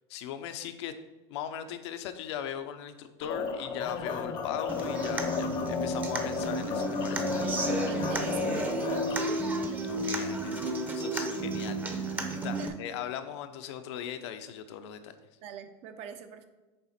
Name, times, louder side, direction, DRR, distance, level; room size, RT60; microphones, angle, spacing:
voice 1, 0.1-0.9 1.3-7.3 9.9-10.7 10.9-15.1, left 9 dB, 70° left, 9 dB, 0.8 m, -39 dB
sound 1, 3.2-9.2, left 5 dB, 30° left, 0.8 m, -33 dB
Human voice / Acoustic guitar, 4.7-12.7, right 2 dB, 10° right, 0.7 m, -32 dB
voice 2, 7.8-9.3 12.6-12.7 15.4-16.5, right 8 dB, 45° right, 9 dB, 0.7 m, -43 dB
6.8 x 4.1 x 5.8 m, 1.2 s
supercardioid pair, 150°, 15 cm